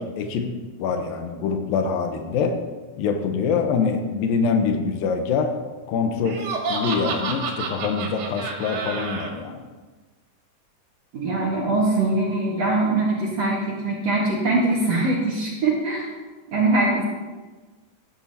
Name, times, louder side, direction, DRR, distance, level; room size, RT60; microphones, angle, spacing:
voice 1, 0.0-2.6 3.0-5.6 5.9-9.6, left 5 dB, 85° left, 5 dB, 2.6 m, -25 dB
Laughter, 6.2-9.3, right 4 dB, 75° right, 3.4 m, -29 dB
voice 2, 11.1-16.0 16.5-17.1, right 2 dB, 55° right, -4 dB, 2.3 m, -22 dB
16.0 x 11.0 x 2.8 m, 1.3 s
omnidirectional pair, 4.0 m